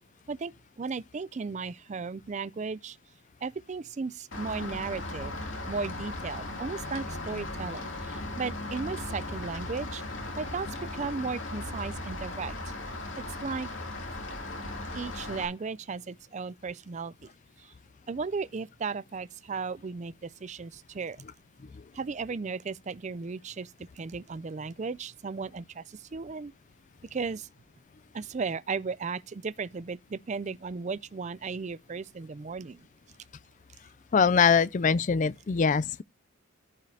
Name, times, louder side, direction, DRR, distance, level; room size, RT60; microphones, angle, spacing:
voice 1, 0.8-3.0 3.4-5.3 5.6-10.0 10.4-10.7 10.9-12.6 13.4-13.7 14.9-17.3 17.6-17.7 18.1-21.2 21.9-23.7 24.0-26.5 27.1-27.5 28.1-32.9, right 4 dB, 35° right, 0.4 m, -35 dB
Rain, 4.3-15.4, left 2 dB, 65° left, 2.7 m, -37 dB
voice 2, 34.1-36.0, left 6 dB, 35° left, 0.4 m, -23 dB
14.5 x 5.1 x 2.8 m
head